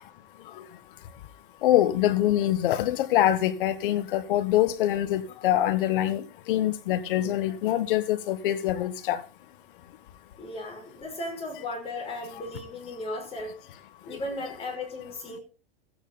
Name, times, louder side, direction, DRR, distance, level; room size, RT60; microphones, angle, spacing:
voice 1, 1.6-9.2, left 13 dB, 65° left, 1.5 m, -24 dB
voice 2, 10.4-13.5 14.0-15.4, left 2 dB, 20° left, 5.7 m, -36 dB
15.5 x 9.3 x 4.1 m
supercardioid pair, 140°, 29 cm